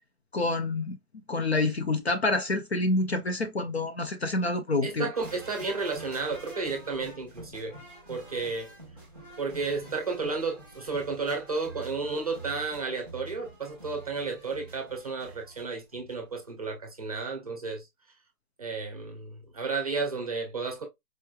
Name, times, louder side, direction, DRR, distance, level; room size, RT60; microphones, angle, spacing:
voice 1, 0.3-1.0 1.3-5.1, left 2 dB, 45° left, 0.4 m, -27 dB
voice 2, 4.8-7.8 8.1-8.7 9.4-17.9 18.6-20.8, right 4 dB, 25° right, 0.6 m, -32 dB
sound 1, 5.1-16.3 16.6-16.7, right 2 dB, 5° left, 0.9 m, -47 dB
4.5 x 3.0 x 2.3 m
hypercardioid pair, 170°, 46 cm